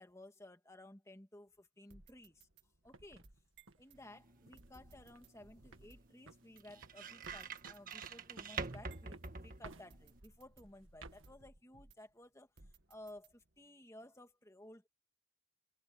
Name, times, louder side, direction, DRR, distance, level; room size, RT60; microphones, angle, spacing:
voice 1, 0.0-2.5 2.8-3.2 3.8-12.5 12.9-14.9, left 1 dB, 15° left, 2.0 m, -56 dB
sound 1, 1.9-4.0 4.6-6.2 6.6-6.7 7.2-9.3 9.9-12.2 12.6-13.7, right 2 dB, 60° right, 1.9 m, -64 dB
sound 2, 2.8-4.7 5.1-5.4 5.6-6.0 6.3-10.4 10.8-11.3, right 3 dB, 90° right, 1.8 m, -56 dB
sound 3, 3.9-10.2, right 4 dB, 45° right, 1.7 m, -48 dB
head